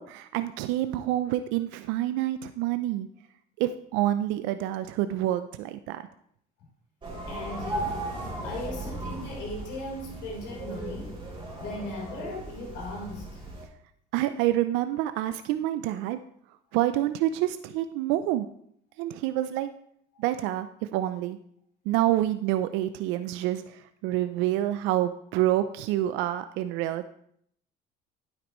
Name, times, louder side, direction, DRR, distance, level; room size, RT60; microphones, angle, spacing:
voice 1, 0.0-3.1 3.6-6.0 14.1-16.2 16.7-18.5 19.0-19.7 20.2-21.4 21.9-27.1, right 13 dB, 75° right, 11 dB, 0.5 m, -27 dB
sound 1, 7.0-13.7, right 1 dB, 25° right, 3.2 m, -37 dB
voice 2, 7.3-8.1 8.4-11.2 11.6-13.4, left 2 dB, 70° left, -2 dB, 4.0 m, -38 dB
9.5 x 8.1 x 3.0 m, 0.67 s
supercardioid pair, 95°, 19 cm